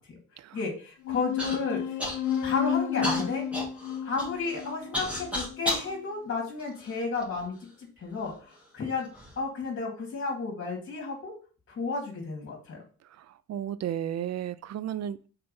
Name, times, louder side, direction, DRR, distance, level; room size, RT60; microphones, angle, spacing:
voice 1, 0.5-1.8 2.4-3.4 4.0-7.5 8.0-9.1 9.4-11.3 11.7-12.8, left 4 dB, 45° left, 2.5 m, -32 dB
sound 1, 1.0-6.0, left 9 dB, 75° left, 0.7 m, -32 dB
Human voice / Cough, 1.4-1.6 2.0-2.5 3.0-5.9 6.6-7.4 8.2-8.3 9.0-9.3, equal, 5° right, 2.8 m, -33 dB
voice 2, 13.1-15.3, right 10 dB, 60° right, 0.6 m, -34 dB
5.5 x 4.2 x 5.5 m
cardioid pair, 90°, 30 cm